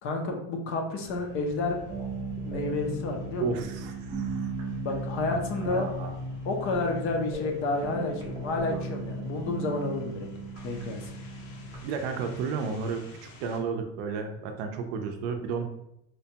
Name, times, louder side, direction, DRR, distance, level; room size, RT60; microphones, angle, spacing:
voice 1, 0.0-1.8 2.4-3.6 4.8-5.9 6.5-10.3 10.6-11.1, left 3 dB, 40° left, 3 dB, 0.5 m, -30 dB
sound 1, 1.0-13.6, left 2 dB, 70° left, 0.9 m, -50 dB
sound 2, 1.9-11.8, right 2 dB, 15° right, 0.6 m, -36 dB
voice 2, 3.4-4.5 5.3-6.2 11.8-15.6, right 5 dB, 55° right, 5 dB, 0.5 m, -33 dB
4.3 x 2.2 x 2.8 m, 0.78 s
cardioid pair, 160°, 33 cm